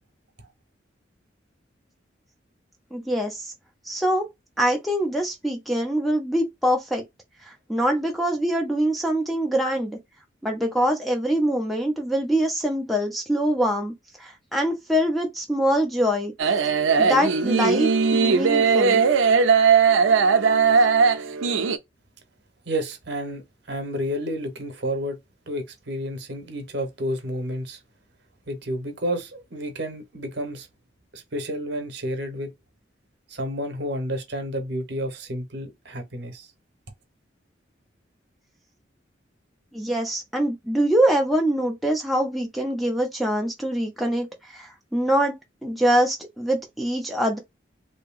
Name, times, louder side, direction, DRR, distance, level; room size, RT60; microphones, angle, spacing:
voice 1, 2.9-3.5 3.9-4.3 4.6-7.0 7.4-10.0 10.4-13.9 14.2-16.3 17.0-19.0 39.7-44.3 44.5-45.3 45.6-47.4, equal, ahead, 0.5 m, -24 dB
sound 1, 16.4-21.8, right 5 dB, 90° right, 0.4 m, -19 dB
voice 2, 22.7-23.4 23.7-25.2 25.5-27.8 28.5-30.7 31.1-32.5 33.3-36.5, equal, 60° right, 0.9 m, -30 dB
2.8 x 2.7 x 2.3 m
head